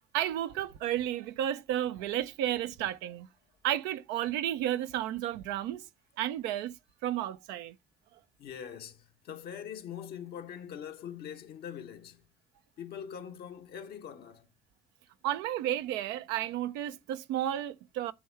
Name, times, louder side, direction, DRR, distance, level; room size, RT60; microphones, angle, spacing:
voice 1, 0.1-3.3 3.6-5.8 6.2-6.7 7.0-7.8 15.2-18.1, right 12 dB, 75° right, 0.7 m, -32 dB
voice 2, 8.4-12.2 12.8-14.5, left 8 dB, 60° left, 1.2 m, -43 dB
9.8 x 3.5 x 4.6 m
hypercardioid pair, 55°, 18 cm